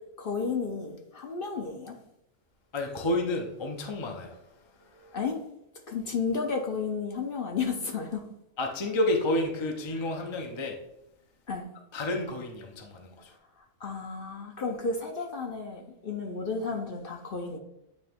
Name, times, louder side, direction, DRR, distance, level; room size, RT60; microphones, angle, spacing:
voice 1, 0.2-2.0 5.1-5.4 5.9-8.2 11.5-11.7 13.8-17.6, left 5 dB, 50° left, 3 dB, 0.9 m, -32 dB
voice 2, 2.7-4.4 4.8-5.2 8.6-10.8 11.9-13.3, left 1 dB, 30° left, 2 dB, 0.6 m, -30 dB
8.7 x 3.4 x 3.5 m, 0.84 s
omnidirectional pair, 1.4 m